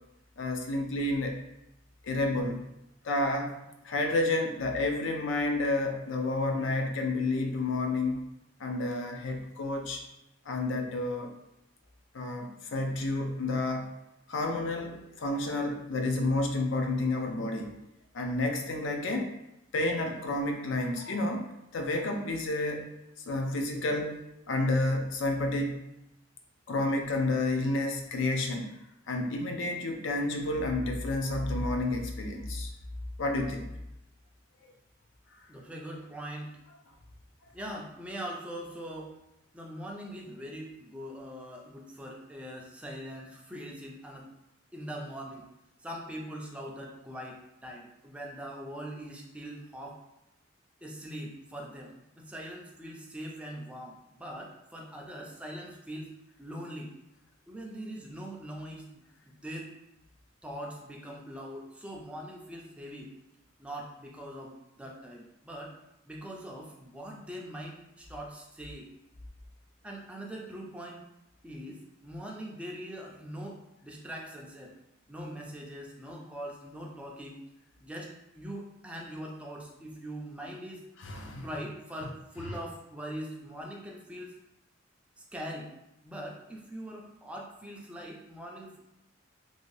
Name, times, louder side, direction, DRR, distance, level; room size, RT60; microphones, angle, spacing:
voice 1, 0.4-1.4 2.0-2.7 3.0-3.6 3.8-8.2 8.6-10.0 10.5-11.3 12.1-13.9 14.3-17.7 18.1-19.3 19.7-21.4 21.7-22.9 23.2-24.2 24.5-25.8 26.7-28.7 29.1-32.7 33.2-33.7 81.0-81.5, left 2 dB, 65° left, 3 dB, 0.5 m, -30 dB
voice 2, 35.5-36.6 37.5-39.2 39.5-44.3 44.7-45.5 45.8-50.0 50.8-56.1 56.4-56.9 57.5-58.8 59.2-59.7 60.4-63.1 63.6-65.7 66.0-68.9 69.8-71.0 71.4-74.7 75.1-77.4 77.8-80.8 81.4-84.4 85.2-85.7 86.0-88.8, equal, 5° right, -1 dB, 0.4 m, -42 dB
2.6 x 2.6 x 3.1 m, 0.86 s
head